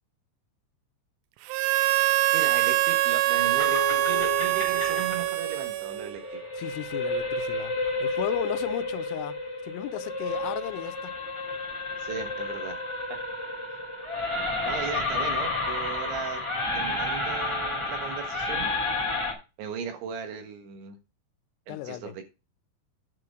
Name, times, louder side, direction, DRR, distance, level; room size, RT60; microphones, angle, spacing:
Harmonica, 1.5-6.3, right 17 dB, 90° right, 3.4 m, -24 dB
voice 1, 2.3-6.2 12.0-12.8 14.6-16.4 16.8-18.7 19.6-21.0 21.7-22.2, right 6 dB, 70° right, 3.6 m, -37 dB
sound 1, 3.6-19.3, left 2 dB, 10° left, 1.6 m, -31 dB
voice 2, 6.6-7.7 8.0-11.1 21.7-22.1, left 16 dB, 85° left, 3.3 m, -35 dB
10.5 x 4.8 x 6.2 m
omnidirectional pair, 5.9 m